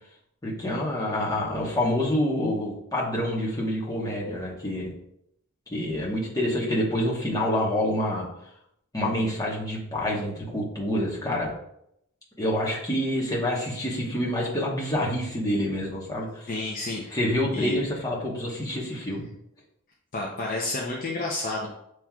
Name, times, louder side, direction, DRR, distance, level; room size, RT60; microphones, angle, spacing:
voice 1, 0.4-4.9 5.7-8.3 8.9-11.5 12.4-16.5 17.1-19.3, left 1 dB, 15° left, -4 dB, 1.1 m, -27 dB
voice 2, 16.5-17.1 17.5-17.8 20.1-21.7, left 2 dB, 40° left, -2 dB, 0.6 m, -30 dB
7.2 x 3.1 x 2.3 m, 0.75 s
head